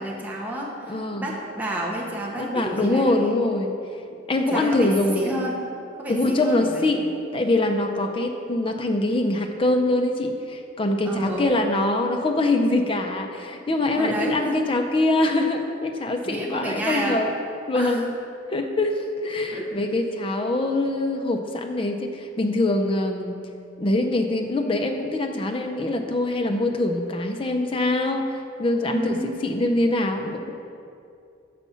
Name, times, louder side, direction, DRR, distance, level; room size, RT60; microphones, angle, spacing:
voice 1, 0.0-3.3 4.4-5.6 6.0-6.9 11.0-11.5 13.9-14.6 16.3-17.2 17.7-18.0 19.5-19.7 28.1-28.2 28.9-29.3, right 1 dB, 10° right, -4 dB, 0.8 m, -30 dB
voice 2, 0.9-1.3 2.3-3.7 4.3-5.4 6.1-7.0 7.3-17.3 17.7-18.1 18.5-23.4 23.8-30.5, left 2 dB, 25° left, 4 dB, 0.4 m, -24 dB
7.1 x 4.1 x 5.6 m, 2.5 s
head